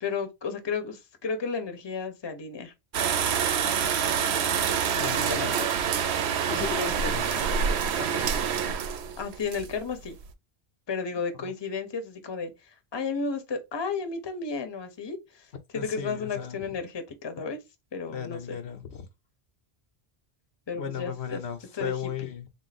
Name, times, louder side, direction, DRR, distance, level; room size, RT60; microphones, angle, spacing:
voice 1, 0.0-2.7 3.4-3.5 3.8-4.0 4.5-5.7 9.2-10.2 10.9-15.5 15.7-17.6 17.9-18.6 20.7-21.4 21.8-21.9 22.2-22.3, left 5 dB, 30° left, 0.7 m, -33 dB
sound 1, 2.9-10.3, right 7 dB, 80° right, 0.9 m, -27 dB
voice 2, 5.0-5.6 6.5-8.6 11.4-11.5 15.7-16.7 18.1-19.1 20.7-22.5, left 8 dB, 80° left, 1.0 m, -36 dB
3.6 x 2.5 x 4.1 m
omnidirectional pair, 1.1 m